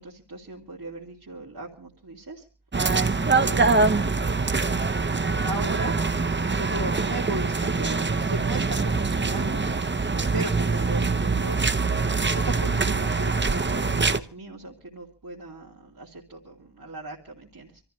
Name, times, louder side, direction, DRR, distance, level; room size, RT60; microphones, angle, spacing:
voice 1, 0.0-2.4 3.4-4.3 5.4-6.0 6.5-9.6 10.1-11.7 12.2-17.8, right 2 dB, 60° right, -4 dB, 2.8 m, -37 dB
sound 1, 2.7-14.2, right 4 dB, 30° right, 0.8 m, -24 dB
26.5 x 13.5 x 3.2 m, 0.36 s
wide cardioid pair, 55°, 40 cm